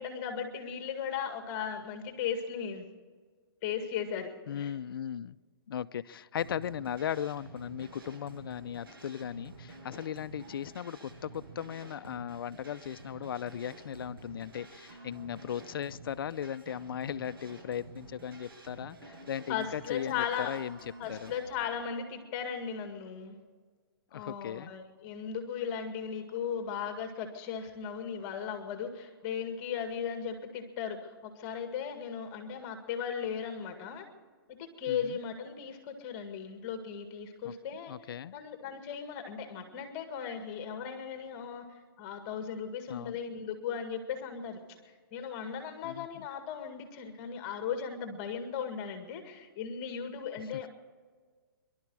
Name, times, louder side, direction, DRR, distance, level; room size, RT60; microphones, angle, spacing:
voice 1, 0.0-2.9 3.6-4.7 19.5-20.5 21.0-23.4 24.1-34.1 34.5-41.7 42.0-44.6 45.1-50.7, left 7 dB, 35° left, 6 dB, 2.0 m, -37 dB
voice 2, 4.5-5.4 5.7-21.3 24.1-24.7 34.9-35.2 37.4-37.5 37.9-38.3 42.9-43.2 45.8-46.3, left 9 dB, 70° left, 16 dB, 0.6 m, -37 dB
sound 1, 6.4-21.5, right 2 dB, 70° right, 6.6 m, -50 dB
23.5 x 12.0 x 4.8 m, 1.5 s
hypercardioid pair, 140°, 12 cm